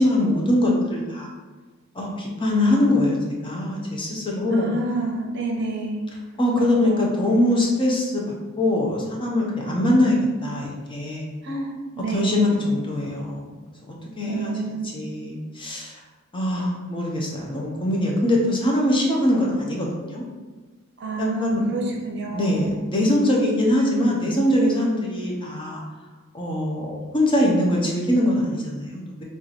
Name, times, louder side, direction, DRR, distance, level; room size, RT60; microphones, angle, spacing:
voice 1, 0.0-1.3 1.9-4.7 6.4-10.2 10.4-11.3 12.1-13.4 13.9-14.5 14.9-15.9 16.3-20.2 21.2-22.0 22.3-25.8 26.3-29.2, left 1 dB, 25° left, -2 dB, 0.8 m, -22 dB
voice 2, 4.5-6.0 6.6-7.2 11.4-12.5 14.3-14.9 21.0-22.8, right 2 dB, 55° right, 1 dB, 0.8 m, -29 dB
3.7 x 3.0 x 4.1 m, 1.3 s
head